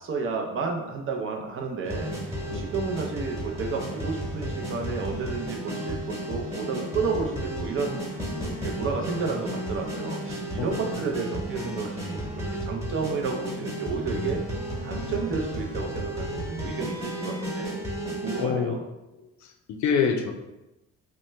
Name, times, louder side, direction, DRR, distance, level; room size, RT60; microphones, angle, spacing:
voice 1, 0.0-14.4 14.8-17.8 18.2-18.8, right 4 dB, 45° right, 2 dB, 0.6 m, -31 dB
sound 1, 1.8-18.5, equal, 10° right, 1.1 m, -33 dB
voice 2, 18.4-18.7 19.2-20.3, left 6 dB, 70° left, 4 dB, 0.5 m, -27 dB
2.9 x 2.2 x 3.2 m, 0.98 s
cardioid pair, 90°, 30 cm